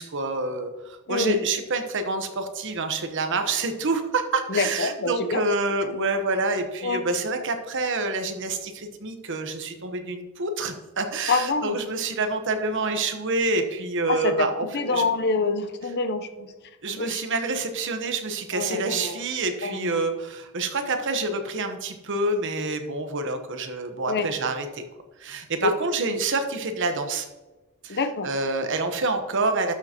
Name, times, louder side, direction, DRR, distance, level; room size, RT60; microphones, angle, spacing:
voice 1, 0.0-15.0 16.8-24.8 25.2-27.3 27.8-28.0 28.2-29.7, right 3 dB, 55° right, 6 dB, 1.0 m, -27 dB
voice 2, 1.1-1.4 4.5-5.5 6.8-7.0 11.3-11.8 14.1-14.5 14.7-16.5 17.0-17.2 18.5-19.2 19.6-20.0 24.1-24.3 25.6-25.7 26.1-26.2 27.9-28.3, left 3 dB, 50° left, 9 dB, 0.7 m, -26 dB
12.0 x 6.8 x 2.9 m, 1.1 s
head